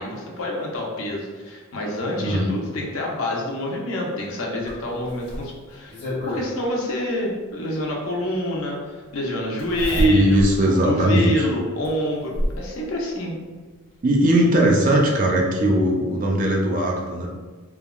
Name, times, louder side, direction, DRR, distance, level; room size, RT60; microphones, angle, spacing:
voice 1, 0.0-6.0 6.3-10.4 10.7-13.3, left 1 dB, 70° left, -2 dB, 0.6 m, -27 dB
voice 2, 2.2-2.5 10.0-11.5 14.0-17.3, right 1 dB, 35° right, 0 dB, 0.4 m, -19 dB
Zipper (clothing), 4.7-6.4 7.9-8.0 9.6-10.6 11.0-11.1 11.8-12.7 13.9-14.0 14.3-14.4, equal, 45° left, 1.2 m, -27 dB
3.4 x 2.2 x 2.2 m, 1.4 s
head